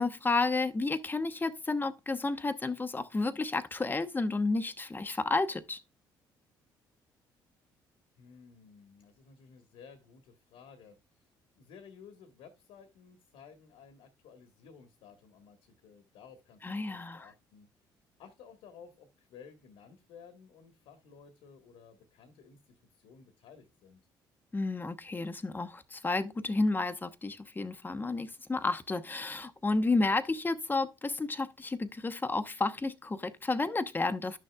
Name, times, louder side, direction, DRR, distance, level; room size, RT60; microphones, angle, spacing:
voice 1, 0.0-5.8 16.6-17.3 24.5-34.4, left 3 dB, 20° left, 1.0 m, -31 dB
voice 2, 8.2-11.3 11.5-17.7 18.2-22.6 22.9-24.0, left 6 dB, 75° left, 1.5 m, -55 dB
11.0 x 6.4 x 2.3 m
hypercardioid pair, 55°, 10 cm